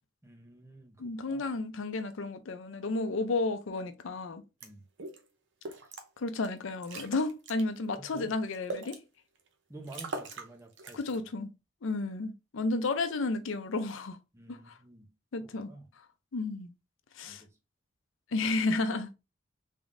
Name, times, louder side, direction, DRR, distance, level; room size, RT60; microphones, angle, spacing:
voice 1, 0.2-1.5 4.6-4.8 8.0-8.3 9.7-11.2 14.3-15.1 15.4-15.9 17.2-17.5, right 2 dB, 15° right, 0.7 m, -50 dB
voice 2, 1.0-4.4 6.2-9.0 10.9-11.5 11.8-14.2 14.5-14.7 15.3-15.7 16.3-16.7 17.2-17.4 18.3-19.1, left 3 dB, 75° left, 0.5 m, -32 dB
sound 1, 4.6-4.7 5.0-5.2 5.6-6.1 6.4-6.5 6.8-7.6 8.1-9.0 9.5-9.6 9.8-10.5 10.8-11.2, right 2 dB, 60° right, 0.7 m, -40 dB
3.6 x 3.5 x 2.5 m
head